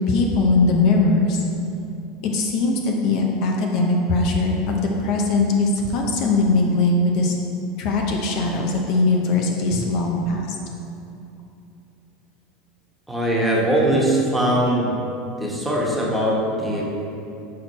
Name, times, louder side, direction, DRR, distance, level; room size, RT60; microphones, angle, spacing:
voice 1, 0.1-1.4 2.3-7.3 7.8-10.4, left 3 dB, 60° left, 0 dB, 0.7 m, -20 dB
voice 2, 13.1-14.9 15.4-16.8, right 1 dB, 5° right, -5 dB, 1.3 m, -21 dB
6.4 x 4.4 x 4.3 m, 2.8 s
supercardioid pair, 115°, 0 cm